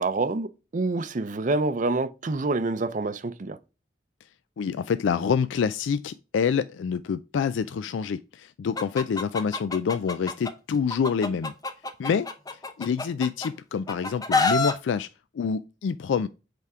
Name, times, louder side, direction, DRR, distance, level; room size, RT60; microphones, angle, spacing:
voice 1, 0.0-3.6, right 3 dB, 45° right, 0.5 m, -27 dB
voice 2, 4.6-11.5 12.0-12.3 12.8-15.1 15.3-16.3, left 6 dB, 75° left, 0.3 m, -27 dB
Chicken rooster, 8.8-10.5 10.9-13.5 13.9-14.7, left 3 dB, 20° left, 0.7 m, -27 dB
8.1 x 3.5 x 4.8 m
head